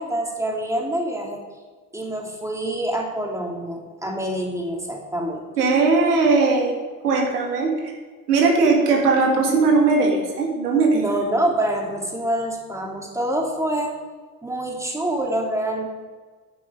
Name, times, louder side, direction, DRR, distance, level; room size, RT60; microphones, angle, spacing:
voice 1, 0.0-1.4 1.9-5.4 10.9-13.9 14.4-15.9, right 1 dB, 5° right, 0 dB, 3.0 m, -26 dB
voice 2, 5.6-6.7 7.0-7.9 8.3-11.0, right 4 dB, 80° right, 0 dB, 2.2 m, -19 dB
10.0 x 9.7 x 4.8 m, 1.4 s
hypercardioid pair, 60°, 46 cm